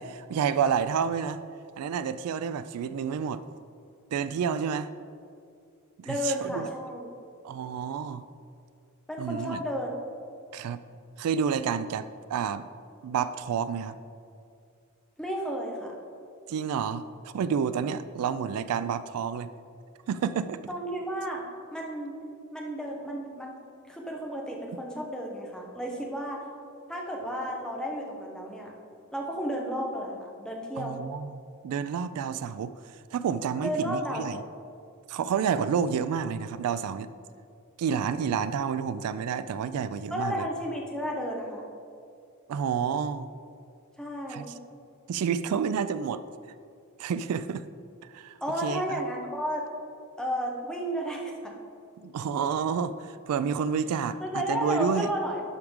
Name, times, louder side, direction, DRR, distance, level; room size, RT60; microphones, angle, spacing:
voice 1, 0.0-1.4 1.8-3.4 4.1-4.9 6.0-6.7 7.4-8.3 9.2-9.6 10.5-10.8 11.2-12.7 13.0-14.0 16.5-19.5 20.1-20.6 30.8-32.7 33.1-34.4 35.1-37.1 37.8-40.5 42.5-43.3 44.3-44.4 45.1-46.2 47.0-47.6 48.1-48.3 48.6-48.8 52.0-55.1, right 7 dB, 90° right, 14 dB, 0.3 m, -29 dB
voice 2, 6.0-7.1 9.1-9.9 15.2-15.9 20.7-21.4 21.7-22.1 22.5-23.5 23.9-26.4 26.9-28.7 29.1-31.0 33.6-34.2 40.1-41.7 44.0-44.5 48.4-49.6 50.2-51.5 54.2-55.4, equal, 5° left, -1 dB, 0.9 m, -32 dB
12.0 x 4.7 x 3.6 m, 2.4 s
head